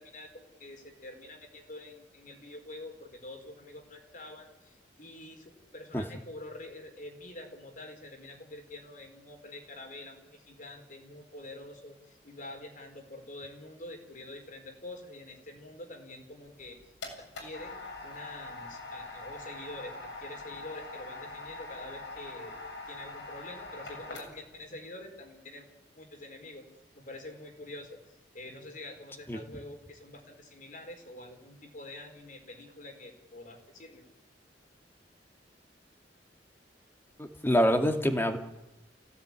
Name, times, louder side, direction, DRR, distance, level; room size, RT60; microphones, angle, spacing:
voice 1, 0.0-16.8 17.2-17.8 18.0-22.6 22.9-25.7 25.9-26.6 26.9-34.0 37.8-37.9, left 1 dB, 45° left, 4 dB, 4.7 m, -46 dB
sound 1, 16.5-24.6, left 3 dB, 80° left, 7.9 m, -43 dB
voice 2, 37.2-38.4, equal, 15° left, 6 dB, 2.4 m, -25 dB
29.0 x 17.5 x 9.8 m, 0.97 s
head